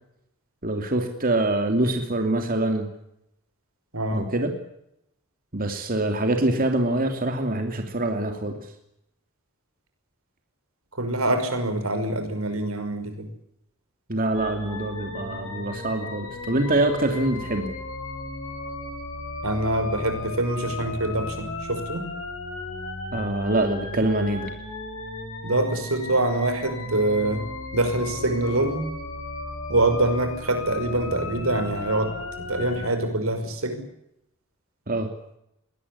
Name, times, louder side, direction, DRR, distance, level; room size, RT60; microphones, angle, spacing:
voice 1, 0.6-2.9 4.1-4.5 5.5-8.7 14.1-17.7 23.1-24.5 34.9-35.1, right 2 dB, 45° right, 5 dB, 2.9 m, -25 dB
voice 2, 3.9-4.3 10.9-13.3 19.4-22.0 25.4-27.4 27.7-28.9 29.7-32.1 32.5-33.8, right 2 dB, 85° right, 8 dB, 5.9 m, -25 dB
sound 1, 14.3-32.9, left 2 dB, 65° left, 7.8 m, -35 dB
22.0 x 18.5 x 9.8 m, 0.79 s
head